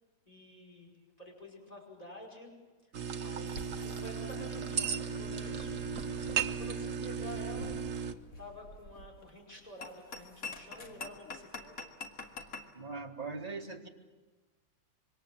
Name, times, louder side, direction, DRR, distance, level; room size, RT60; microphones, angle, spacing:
voice 1, 0.3-2.5 3.2-5.8 6.5-7.8 8.4-11.9, left 1 dB, 20° left, 0 dB, 5.5 m, -49 dB
sound 1, 2.9-8.1, right 7 dB, 55° right, 1.3 m, -36 dB
Bowed string instrument, 3.4-8.0, left 3 dB, 75° left, 1.5 m, -51 dB
sound 2, 3.5-12.7, left 3 dB, 55° left, 2.3 m, -48 dB
voice 2, 12.7-13.9, right 4 dB, 20° right, 1 dB, 2.2 m, -40 dB
26.0 x 24.5 x 7.6 m, 1.3 s
omnidirectional pair, 1.8 m